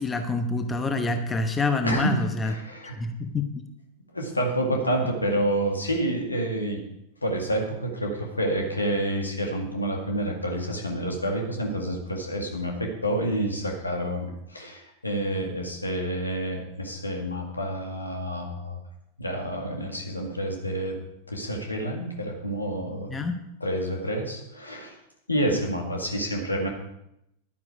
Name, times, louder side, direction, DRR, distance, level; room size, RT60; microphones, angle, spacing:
voice 1, 0.0-2.5 3.0-3.6 23.1-23.4, left 3 dB, 15° left, 7 dB, 1.0 m, -27 dB
voice 2, 1.8-3.0 4.1-6.8 7.2-18.8 19.2-21.0 21.3-23.1 23.6-25.0 25.3-26.7, right 1 dB, 80° left, 1 dB, 2.0 m, -28 dB
11.0 x 9.7 x 4.8 m, 0.82 s
figure-of-eight pair, 90°, 0 cm